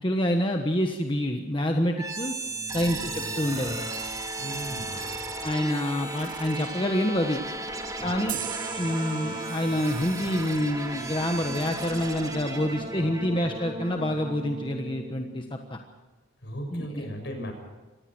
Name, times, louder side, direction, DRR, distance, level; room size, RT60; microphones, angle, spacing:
voice 1, 0.0-2.3 2.7-3.9 5.4-7.4 8.0-8.4 8.8-15.8 16.7-17.0, left 1 dB, 25° left, 3 dB, 1.3 m, -27 dB
sound 1, 2.0-15.8, right 2 dB, 20° right, 2.5 m, -35 dB
voice 2, 4.4-5.5 8.0-8.1 16.4-17.5, equal, 60° left, 4 dB, 6.7 m, -38 dB
sound 2, 8.3-11.6, right 12 dB, 45° right, 0.6 m, -40 dB
25.5 x 18.5 x 6.2 m, 1.2 s
head